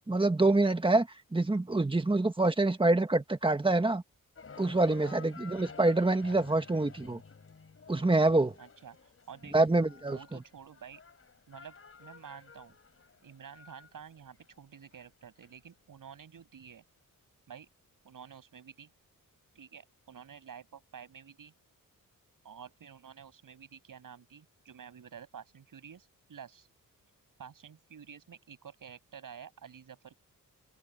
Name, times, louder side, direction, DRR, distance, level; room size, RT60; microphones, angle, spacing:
voice 1, 0.1-4.0 4.6-7.2 7.9-8.5 9.5-10.2, right 2 dB, 15° right, 1.8 m, -26 dB
sound 1, 4.4-15.5, left 5 dB, 40° left, 4.4 m, -52 dB
voice 2, 8.6-9.6 10.1-11.0 11.5-12.8 13.2-16.8 17.5-17.7 18.0-18.9 19.5-21.5 22.4-26.7 27.4-30.2, right 7 dB, 70° right, 7.2 m, -50 dB
wide cardioid pair, 135°, 34 cm